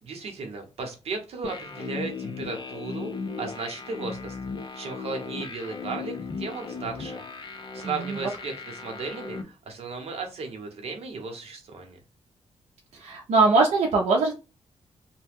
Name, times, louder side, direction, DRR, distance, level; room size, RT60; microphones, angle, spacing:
voice 1, 0.0-3.1 3.4-4.4 4.7-7.2 7.7-12.0, right 4 dB, 60° right, 3 dB, 0.9 m, -35 dB
sound 1, 1.4-9.4, left 4 dB, 40° left, 0.5 m, -37 dB
voice 2, 7.8-8.2 13.0-14.3, right 3 dB, 90° right, -1 dB, 0.6 m, -21 dB
2.8 x 2.1 x 3.4 m, 0.32 s
wide cardioid pair, 160°, 12 cm